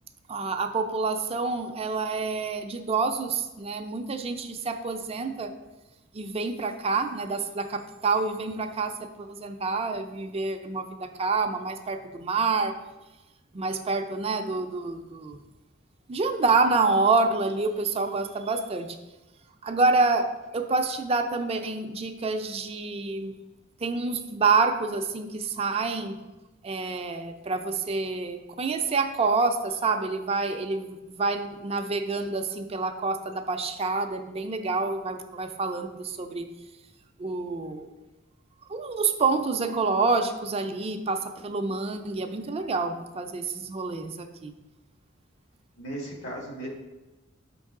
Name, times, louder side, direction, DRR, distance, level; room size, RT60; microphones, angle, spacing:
voice 1, 0.3-5.5 6.1-8.9 9.2-12.7 13.5-15.4 16.1-19.0 19.6-23.3 23.8-26.2 26.6-36.5 37.2-37.9 38.7-44.6, right 3 dB, 30° right, 6 dB, 0.4 m, -27 dB
voice 2, 45.8-46.7, right 1 dB, 70° left, -1 dB, 1.8 m, -36 dB
6.6 x 5.4 x 3.6 m, 1.1 s
head